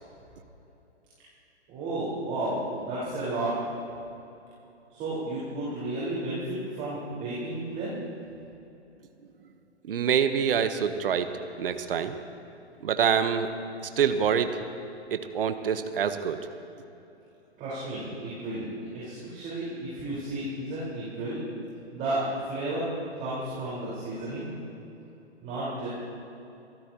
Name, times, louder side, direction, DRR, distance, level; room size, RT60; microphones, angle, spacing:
voice 1, 1.7-3.5 4.9-8.0 17.6-21.4 21.9-22.9 23.1-24.5 25.4-25.9, right 1 dB, 25° right, -9 dB, 4.6 m, -32 dB
voice 2, 9.9-11.3 11.6-12.2 12.8-13.5 13.8-14.5 15.1-16.5, right 7 dB, 55° right, 9 dB, 1.1 m, -26 dB
29.0 x 15.0 x 3.0 m, 2.9 s
figure-of-eight pair, 130°, 34 cm